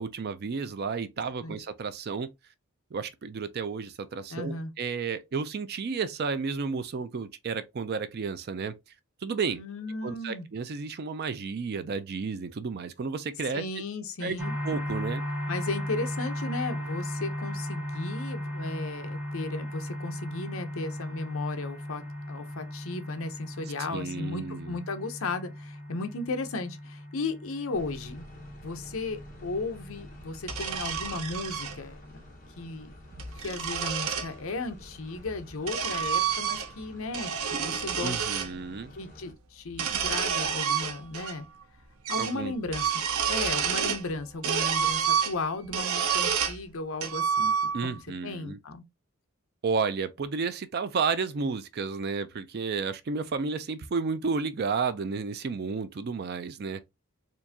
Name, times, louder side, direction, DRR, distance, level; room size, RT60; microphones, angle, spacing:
voice 1, 0.0-2.3 2.9-8.7 9.2-9.6 10.0-13.6 14.2-14.4 14.6-15.2 23.9-24.8 38.0-38.9 42.2-42.5 47.7-48.6 49.6-56.9, right 5 dB, 45° right, 0.4 m, -32 dB
voice 2, 4.3-4.7 9.5-10.5 13.5-14.5 15.5-22.0 22.3-28.2 28.6-32.0 32.6-32.9 33.4-37.3 37.6-38.3 38.9-41.4 42.1-47.9 48.2-48.8, left 3 dB, 65° left, 0.7 m, -35 dB
sound 1, 14.4-32.1, left 1 dB, 5° right, 0.8 m, -37 dB
sound 2, 27.7-39.3, left 1 dB, 40° left, 1.2 m, -49 dB
sound 3, 30.4-31.7 33.0-34.3 35.2-36.8 37.1-38.5 39.7-41.3 41.6-41.7 42.1-42.4 42.7-44.1 44.4-46.6 47.0-48.0, right 7 dB, 75° right, 0.7 m, -29 dB
4.4 x 2.5 x 2.7 m
head